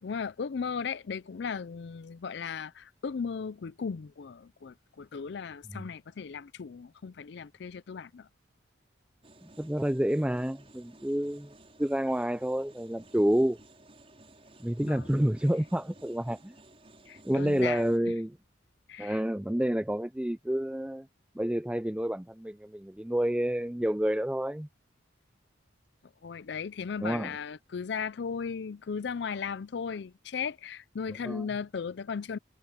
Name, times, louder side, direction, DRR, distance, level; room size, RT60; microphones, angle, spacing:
voice 1, 0.0-8.3 14.8-15.1 17.1-17.8 18.9-19.2 26.2-32.4, left 6 dB, 60° left, 0.4 m, -36 dB
sound 1, 9.2-18.0, right 2 dB, 30° right, 6.0 m, -56 dB
voice 2, 9.4-11.5 11.8-13.6 14.6-16.5 17.2-18.4 19.0-21.1 21.3-24.7 27.0-27.3 31.2-31.5, equal, 5° right, 0.4 m, -29 dB
head